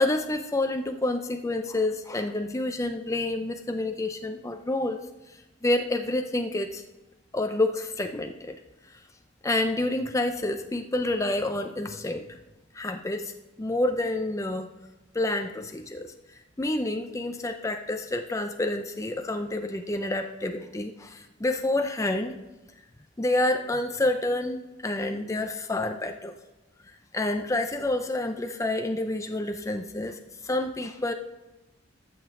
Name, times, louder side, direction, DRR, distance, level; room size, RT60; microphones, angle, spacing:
voice 1, 0.0-5.0 5.6-6.8 7.3-8.5 9.4-12.3 12.7-13.3 13.6-14.7 15.1-16.1 16.6-22.4 23.2-26.3 27.1-30.2 30.4-31.1, left 2 dB, 15° left, 6 dB, 0.5 m, -28 dB
13.5 x 7.0 x 3.7 m, 1.0 s
head